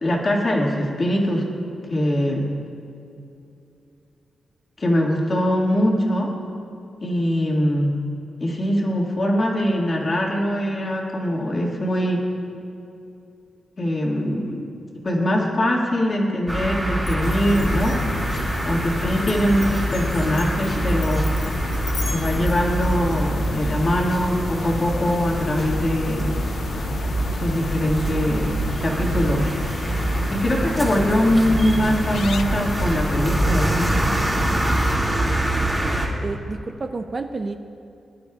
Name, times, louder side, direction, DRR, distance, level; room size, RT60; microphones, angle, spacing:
voice 1, 0.0-1.5 1.9-2.5 4.8-6.3 7.0-8.0 8.4-12.2 13.8-14.7 15.0-18.0 18.6-21.3 22.1-26.3 27.3-29.5 30.3-33.8, equal, 30° left, -1 dB, 1.9 m, -22 dB
sound 1, 16.5-36.1, right 1 dB, 10° right, 2.2 m, -25 dB
Glass, 17.1-23.5, left 4 dB, 85° left, 1.6 m, -39 dB
sound 2, 17.2-35.0, left 6 dB, 65° left, 0.3 m, -32 dB
voice 2, 36.2-37.6, right 3 dB, 30° right, 6 dB, 0.4 m, -30 dB
21.0 x 12.0 x 2.4 m, 2.6 s
wide cardioid pair, 155°, 0 cm